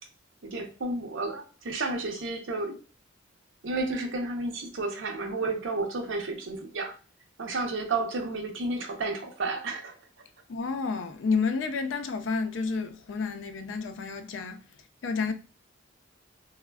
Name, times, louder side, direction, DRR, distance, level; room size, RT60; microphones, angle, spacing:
voice 1, 0.4-2.8 3.6-6.9 7.4-9.9, right 3 dB, 80° right, 0.6 m, -31 dB
voice 2, 10.5-14.6 15.0-15.3, left 4 dB, 75° left, 0.4 m, -30 dB
3.2 x 2.1 x 2.2 m
head